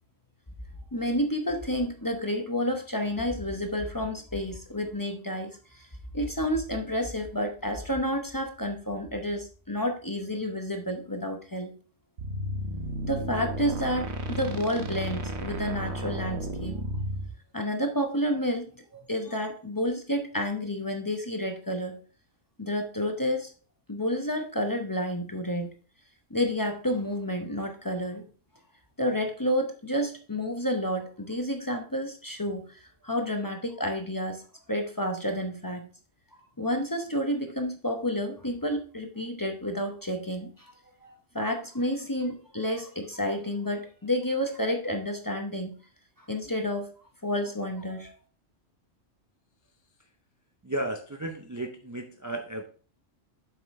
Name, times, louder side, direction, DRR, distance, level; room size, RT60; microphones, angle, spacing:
voice 1, 0.9-5.9 6.1-11.7 13.0-16.8 17.5-22.0 22.6-23.5 23.9-25.7 26.3-28.3 29.0-34.4 34.7-35.9 36.6-40.7 41.0-45.8 46.2-46.9 47.2-48.1, equal, 20° left, 4 dB, 0.7 m, -30 dB
sound 1, 12.2-17.3, equal, 65° right, 1.2 m, -33 dB
voice 2, 50.6-52.6, right 1 dB, 20° right, 4 dB, 0.5 m, -34 dB
7.6 x 5.9 x 3.1 m, 0.38 s
omnidirectional pair, 1.2 m